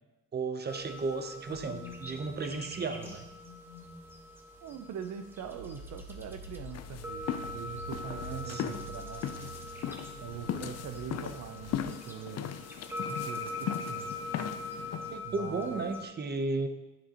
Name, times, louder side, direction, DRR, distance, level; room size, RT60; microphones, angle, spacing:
voice 1, 0.3-3.2 8.0-8.9 10.7-10.8 15.1-16.7, right 3 dB, 35° right, 9 dB, 0.7 m, -35 dB
sound 1, 0.6-16.0, left 2 dB, 5° right, 1.1 m, -43 dB
sound 2, 1.5-4.2 4.6-4.9 5.3-11.8, left 1 dB, 75° left, 1.3 m, -47 dB
voice 2, 4.6-9.3 10.2-12.6 13.0-14.2 15.2-15.8, right 8 dB, 70° right, 9 dB, 0.6 m, -43 dB
sound 3, 6.7-15.2, left 10 dB, 55° left, 0.5 m, -38 dB
9.3 x 7.0 x 2.9 m, 1.1 s
cardioid pair, 90°, 30 cm